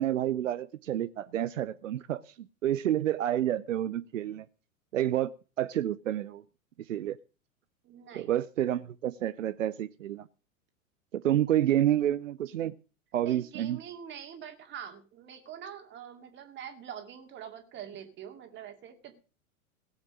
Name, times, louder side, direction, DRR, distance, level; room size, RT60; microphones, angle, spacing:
voice 1, 0.0-4.5 4.9-5.3 5.6-6.4 6.9-7.2 8.1-10.3 11.1-12.7 13.1-13.8, right 12 dB, 60° right, 15 dB, 0.7 m, -29 dB
voice 2, 7.8-8.4 13.2-19.2, right 9 dB, 25° right, 6 dB, 2.3 m, -44 dB
17.0 x 7.4 x 6.2 m, 0.35 s
figure-of-eight pair, 95°, 43 cm